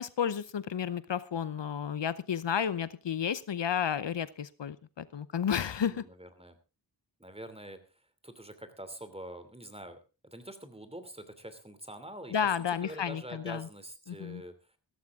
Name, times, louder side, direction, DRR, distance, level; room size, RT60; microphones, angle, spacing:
voice 1, 0.0-6.0 12.3-13.7 14.1-14.4, left 8 dB, 70° left, 16 dB, 0.8 m, -32 dB
voice 2, 5.9-6.6 7.2-7.8 8.2-10.0 10.3-12.3 12.7-14.5, right 1 dB, 15° right, 10 dB, 2.9 m, -45 dB
16.0 x 14.0 x 3.7 m, 0.32 s
cardioid pair, 55°, 46 cm